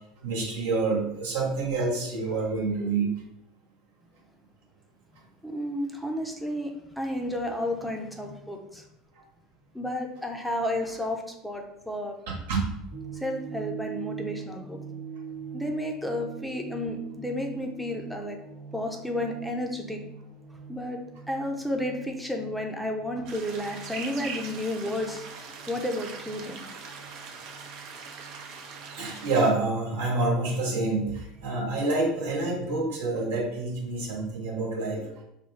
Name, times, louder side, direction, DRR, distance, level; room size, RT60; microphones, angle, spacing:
voice 1, 0.2-3.1 12.3-12.7 29.0-35.0, right 3 dB, 75° right, -2 dB, 1.1 m, -27 dB
voice 2, 5.4-8.8 9.7-12.1 13.1-14.8 15.5-18.4 18.7-20.0 20.7-25.3 25.7-26.6 26.9-27.0, left 1 dB, ahead, 2 dB, 0.6 m, -32 dB
sound 1, 12.9-32.3, right 6 dB, 30° right, 1.0 m, -44 dB
sound 2, 23.3-29.5, right 5 dB, 60° right, 0.6 m, -41 dB
4.7 x 2.3 x 3.2 m, 0.81 s
hypercardioid pair, 75°, 0 cm